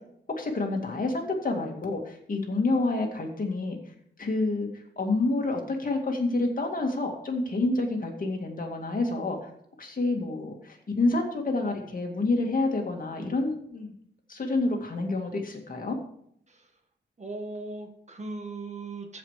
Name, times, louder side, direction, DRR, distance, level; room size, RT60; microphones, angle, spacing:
voice 1, 0.4-3.8 4.2-4.7 5.0-9.4 9.8-13.9 14.3-16.0, left 2 dB, 45° left, 2 dB, 2.2 m, -28 dB
voice 2, 17.2-19.2, right 3 dB, 35° right, 4 dB, 1.6 m, -38 dB
14.5 x 5.2 x 5.0 m, 0.68 s
wide cardioid pair, 130°, 19 cm